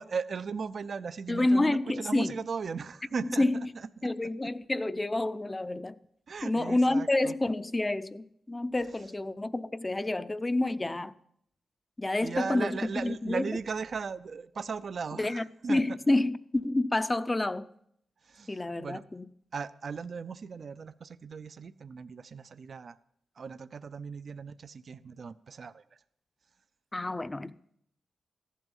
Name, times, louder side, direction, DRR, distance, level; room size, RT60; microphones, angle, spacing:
voice 1, 0.0-4.1 6.3-7.4 8.8-9.1 12.2-15.8 18.2-19.0 19.5-23.0 23.4-25.8, right 5 dB, 55° right, 0.5 m, -37 dB
voice 2, 1.3-2.3 3.4-3.6 4.0-6.0 6.4-11.1 12.0-13.4 15.2-17.7 18.5-19.2 26.9-27.5, left 2 dB, 20° left, 0.5 m, -28 dB
15.0 x 11.0 x 5.4 m
wide cardioid pair, 115°, 0 cm